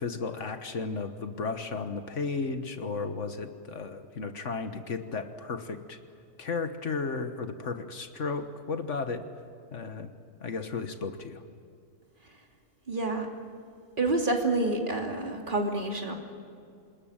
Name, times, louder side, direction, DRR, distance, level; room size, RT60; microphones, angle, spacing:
voice 1, 0.0-6.0 6.4-9.2 9.7-10.1 10.4-11.4, left 4 dB, 60° left, 8 dB, 1.6 m, -34 dB
voice 2, 12.9-13.3 14.0-16.1, right 2 dB, 40° right, 1 dB, 3.0 m, -28 dB
27.0 x 20.5 x 8.9 m, 2.4 s
omnidirectional pair, 1.4 m